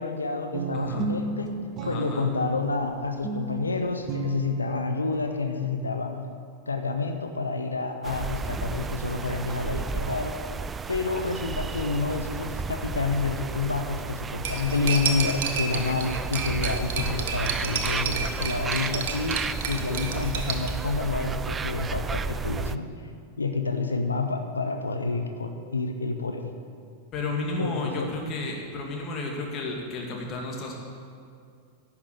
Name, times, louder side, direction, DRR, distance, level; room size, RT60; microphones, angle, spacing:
voice 1, 0.0-1.5 1.8-6.2 6.7-10.4 10.9-22.9 23.4-26.5 27.6-28.1, left 3 dB, 75° left, 6 dB, 0.7 m, -29 dB
Guitar, 0.5-5.7, right 4 dB, 35° right, 0.9 m, -34 dB
voice 2, 0.7-1.1 1.8-2.3 27.1-30.7, left 2 dB, 35° left, 0 dB, 2.3 m, -32 dB
sound 1, 8.0-22.8, right 4 dB, 20° right, 0.3 m, -33 dB
Cutlery silverware, 14.4-20.7, right 6 dB, 55° right, 1.0 m, -31 dB
11.0 x 6.0 x 8.3 m, 2.3 s
figure-of-eight pair, 90°, 0 cm